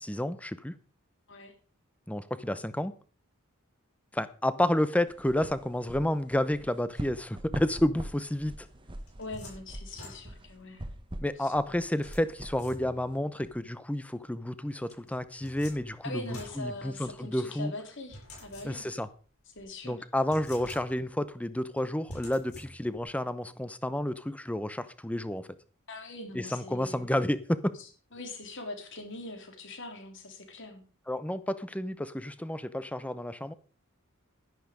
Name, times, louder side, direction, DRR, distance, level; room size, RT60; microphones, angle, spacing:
voice 1, 0.0-0.8 2.1-2.9 4.1-8.7 11.2-17.7 18.6-19.1 19.8-25.5 26.3-27.7 31.1-33.5, left 1 dB, 5° left, 14 dB, 0.8 m, -30 dB
sound 1, 5.1-13.6, right 1 dB, 20° right, 1.1 m, -43 dB
sound 2, 8.7-10.6 12.0-13.2 14.9-17.4 18.1-19.1 19.6-19.7 20.2-21.2 22.1-23.1, left 1 dB, 85° left, 7.3 m, -48 dB
voice 2, 9.2-10.9 11.4-11.5 16.0-18.9 19.6-20.0 25.9-27.2 27.8-30.8, left 2 dB, 55° left, 5 dB, 3.4 m, -42 dB
12.0 x 10.5 x 5.2 m, 0.38 s
head